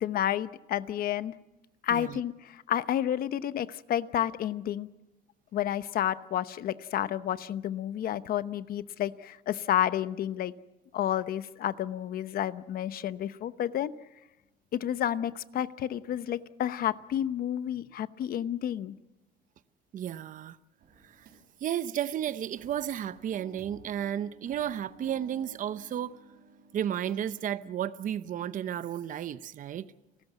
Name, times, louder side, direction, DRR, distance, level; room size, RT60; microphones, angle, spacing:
voice 1, 0.0-1.3 1.8-4.9 5.5-10.5 10.9-13.9 14.7-19.0, left 11 dB, 60° left, 0.9 m, -30 dB
voice 2, 1.9-2.2 19.9-20.6 21.0-21.3 21.6-26.2 26.7-29.9, right 10 dB, 50° right, 0.8 m, -33 dB
sound 1, 20.8-21.8 22.3-27.5, right 4 dB, 70° right, 6.3 m, -54 dB
30.0 x 13.5 x 8.2 m
cardioid pair, 110°, 17 cm